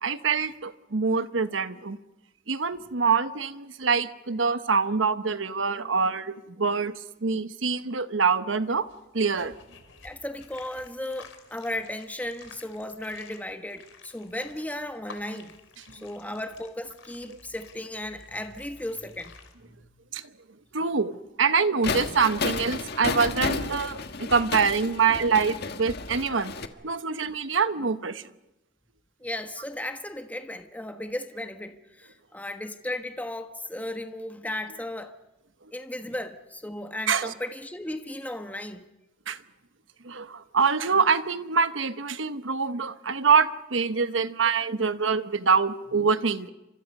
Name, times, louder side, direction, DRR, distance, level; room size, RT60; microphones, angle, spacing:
voice 1, 0.0-2.0 2.5-6.9 7.2-8.8 9.1-9.5 20.1-20.2 20.7-26.5 26.8-28.2 37.1-37.3 39.3-39.4 40.0-46.5, right 5 dB, 85° right, 1.1 m, -25 dB
sound 1, 8.6-19.5, left 5 dB, 85° left, 3.4 m, -52 dB
voice 2, 10.0-15.6 15.9-19.3 19.6-19.9 29.2-35.1 35.7-38.9, left 1 dB, 10° left, 1.3 m, -35 dB
sound 2, 21.8-26.7, left 4 dB, 55° left, 1.5 m, -32 dB
30.0 x 26.0 x 5.4 m
head